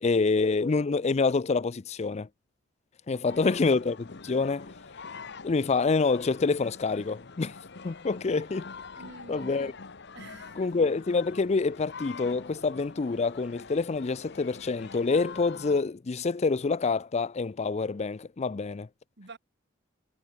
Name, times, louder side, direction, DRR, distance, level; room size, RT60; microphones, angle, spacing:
voice 1, 0.0-2.3 3.1-4.7 5.4-7.5 7.8-8.7 9.3-9.7 10.6-18.9, left 4 dB, 35° left, 0.4 m, -27 dB
voice 2, 3.1-3.6 9.0-9.8 10.1-10.7 19.2-19.4, right 3 dB, 55° right, 2.1 m, -48 dB
sound 1, 3.3-15.8, left 4 dB, 55° left, 1.2 m, -45 dB
head